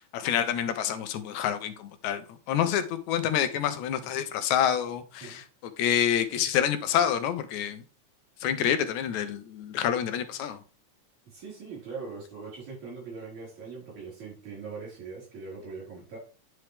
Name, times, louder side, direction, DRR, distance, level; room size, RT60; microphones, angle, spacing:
voice 1, 0.0-5.4 5.8-7.8 8.4-10.6, left 9 dB, 85° left, 10 dB, 2.0 m, -27 dB
voice 2, 11.3-16.2, right 4 dB, 70° right, -5 dB, 5.8 m, -41 dB
9.7 x 4.5 x 3.3 m, 0.36 s
omnidirectional pair, 3.4 m